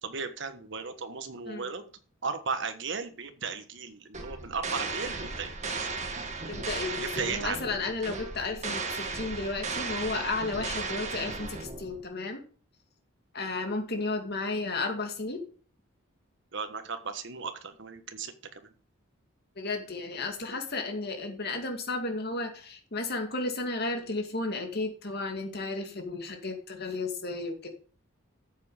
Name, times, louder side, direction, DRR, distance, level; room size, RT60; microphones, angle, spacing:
voice 1, 0.0-1.8 2.2-5.9 7.0-7.6 16.5-18.6, right 5 dB, 60° right, 8 dB, 1.3 m, -36 dB
sound 1, 4.1-12.0, right 4 dB, 35° right, 1.7 m, -36 dB
voice 2, 6.5-12.4 13.3-15.4 19.6-27.7, left 3 dB, 50° left, 4 dB, 2.3 m, -33 dB
13.0 x 7.4 x 5.0 m, 0.42 s
head